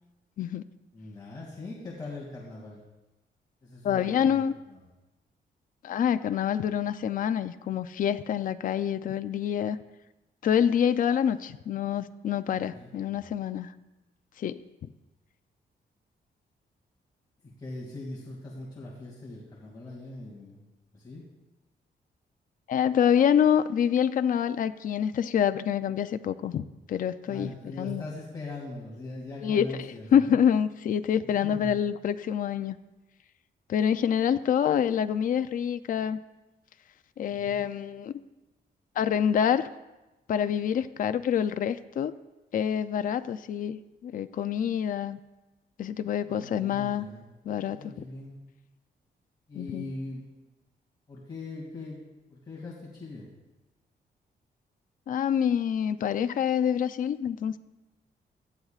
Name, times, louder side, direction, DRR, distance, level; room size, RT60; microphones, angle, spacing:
voice 1, 0.9-2.8 3.6-4.9 12.7-13.3 17.4-20.6 20.9-21.2 27.3-30.4 31.4-31.8 37.3-37.6 46.3-47.3 47.7-48.3 49.5-50.3 51.1-52.0 52.3-53.3, left 2 dB, 25° left, -5 dB, 2.4 m, -41 dB
voice 2, 3.8-4.5 5.8-9.8 10.4-13.7 14.4-14.6 22.7-28.0 29.4-32.8 33.7-36.2 37.2-38.2 39.0-39.7 40.3-42.1 42.5-45.2 45.8-47.1 47.5-47.8 49.5-49.9 55.1-57.6, left 8 dB, 50° left, 11 dB, 0.4 m, -26 dB
18.0 x 12.5 x 2.4 m, 1.0 s
wide cardioid pair, 155°, 17 cm